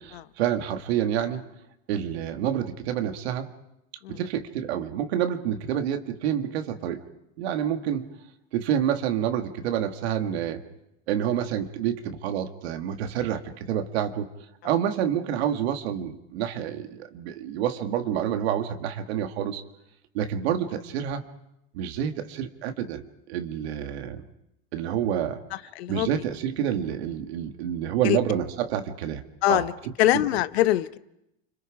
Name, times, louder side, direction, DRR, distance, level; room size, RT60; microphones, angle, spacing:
voice 1, 0.0-1.4 1.9-3.5 4.1-7.0 7.4-8.1 8.5-10.6 11.1-14.3 14.6-19.6 20.1-21.2 21.7-24.2 24.7-25.4 25.9-29.2 29.5-30.2, right 9 dB, 80° right, 6 dB, 1.9 m, -28 dB
voice 2, 25.8-26.1 28.0-28.2 29.4-29.7 30.0-31.0, left 15 dB, 80° left, 14 dB, 0.9 m, -23 dB
29.5 x 26.0 x 4.8 m, 0.82 s
supercardioid pair, 120°, 31 cm